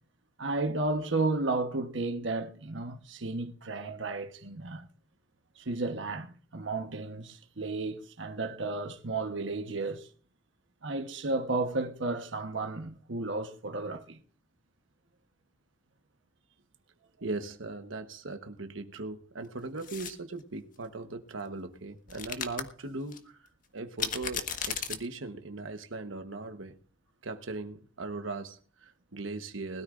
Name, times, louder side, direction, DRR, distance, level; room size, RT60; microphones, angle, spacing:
voice 1, 0.4-4.9 5.6-10.1 10.8-14.2, right 3 dB, 70° right, 1.2 m, -33 dB
voice 2, 17.2-26.7 27.2-29.8, right 3 dB, 85° right, 1.2 m, -39 dB
sound 1, 19.8-20.1 22.1-22.6 23.1-23.2 24.0-25.0, left 7 dB, 45° left, 1.5 m, -34 dB
20.5 x 13.0 x 2.6 m
head